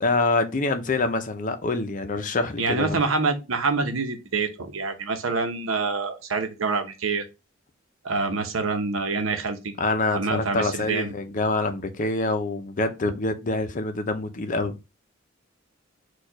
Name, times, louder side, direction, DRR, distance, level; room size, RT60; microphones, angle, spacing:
voice 1, 0.0-3.0 9.8-14.8, left 2 dB, 40° left, 0.6 m, -26 dB
voice 2, 2.6-7.2 8.0-9.7 10.1-11.1, right 4 dB, 80° right, 0.8 m, -26 dB
4.5 x 2.4 x 4.7 m
head